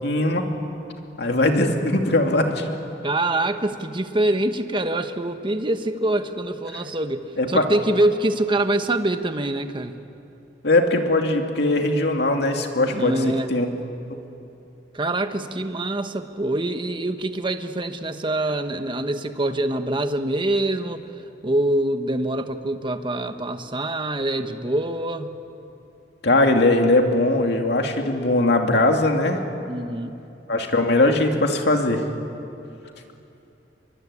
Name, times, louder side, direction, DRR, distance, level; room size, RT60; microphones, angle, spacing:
voice 1, 0.0-0.5 1.2-2.6 7.4-7.7 10.6-13.7 26.2-29.4 30.5-32.0, left 2 dB, 65° left, 3 dB, 2.6 m, -20 dB
voice 2, 3.0-9.9 12.9-13.5 14.9-21.0 21.4-25.4 29.7-30.1, right 1 dB, 30° right, 8 dB, 1.3 m, -25 dB
24.5 x 23.5 x 9.9 m, 2.8 s
head